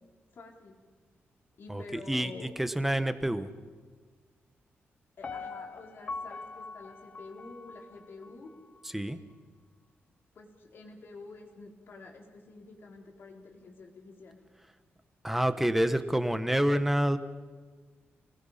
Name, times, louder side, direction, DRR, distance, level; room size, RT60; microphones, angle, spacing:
voice 1, 0.3-0.8 1.6-2.5 5.2-8.5 10.3-14.4, left 3 dB, 60° left, 1 dB, 4.3 m, -48 dB
voice 2, 1.7-2.3 2.6-3.5 8.9-9.2 15.2-17.2, right 1 dB, 5° right, 10 dB, 1.2 m, -27 dB
Piano, 5.2-8.3 8.8-8.9, left 4 dB, 35° left, 0.9 m, -42 dB
30.0 x 20.5 x 5.8 m, 1.5 s
wide cardioid pair, 140°, 4 cm